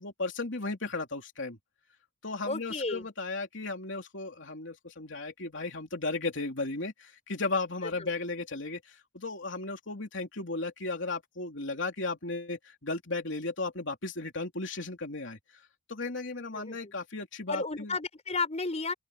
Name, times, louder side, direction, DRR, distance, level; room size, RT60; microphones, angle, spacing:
voice 1, 0.0-1.6 2.2-15.4 15.9-18.0, left 3 dB, 70° left, 3.4 m, -35 dB
voice 2, 2.4-3.1 7.9-8.1 16.5-16.9 17.5-18.9, left 3 dB, 35° left, 4.6 m, -33 dB
open air
head